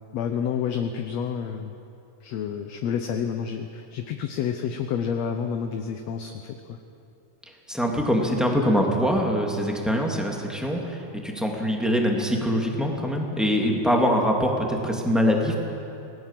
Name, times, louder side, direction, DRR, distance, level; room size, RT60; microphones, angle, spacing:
voice 1, 0.1-1.7 2.2-6.8, left 7 dB, 70° left, 6 dB, 2.0 m, -29 dB
voice 2, 7.7-15.6, equal, ahead, 0 dB, 2.3 m, -23 dB
27.5 x 19.5 x 7.6 m, 2.7 s
omnidirectional pair, 3.5 m